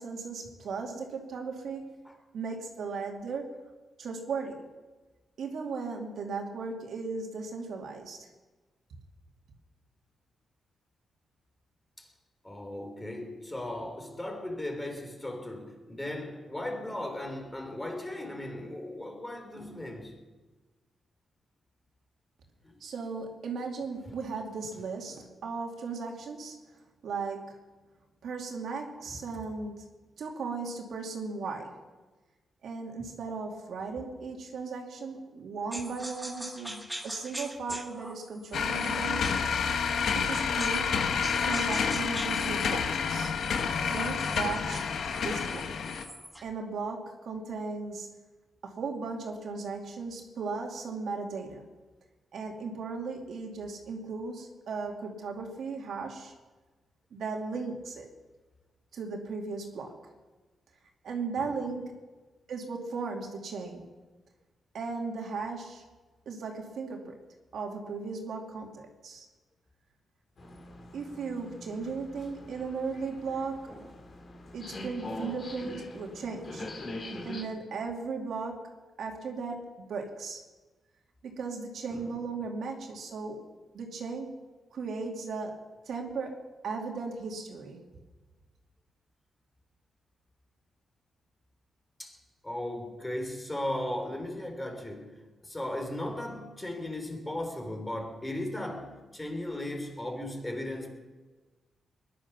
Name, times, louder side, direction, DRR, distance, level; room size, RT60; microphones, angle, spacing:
voice 1, 0.0-1.9 2.3-3.5 4.0-4.6 5.4-8.3 22.8-26.6 27.0-27.7 28.2-29.9 30.2-31.8 32.6-39.4 40.1-41.0 41.4-43.3 43.9-44.8 45.2-45.7 46.4-48.1 48.6-51.7 52.3-56.3 57.1-58.1 58.9-60.0 61.0-62.0 62.5-63.9 64.7-65.8 66.3-67.2 67.5-69.3 70.9-73.7 74.5-76.7 77.2-80.4 81.2-83.4 83.7-84.3 84.7-85.6 85.9-86.4 86.6-87.8, right 4 dB, 70° right, 2.6 m, -36 dB
voice 2, 12.4-20.2 22.6-22.8 29.1-29.2 61.4-61.5 73.7-73.9 81.9-82.1 92.0-92.2 92.4-100.9, left 1 dB, 15° left, 3.4 m, -37 dB
sound 1, 35.7-40.9 41.2-46.5, right 1 dB, 5° right, 1.6 m, -43 dB
sound 2, 38.5-46.0, left 6 dB, 70° left, 1.3 m, -29 dB
sound 3, 70.4-77.4, left 1 dB, 45° left, 2.8 m, -43 dB
20.5 x 11.5 x 6.1 m
cardioid pair, 110°, 0 cm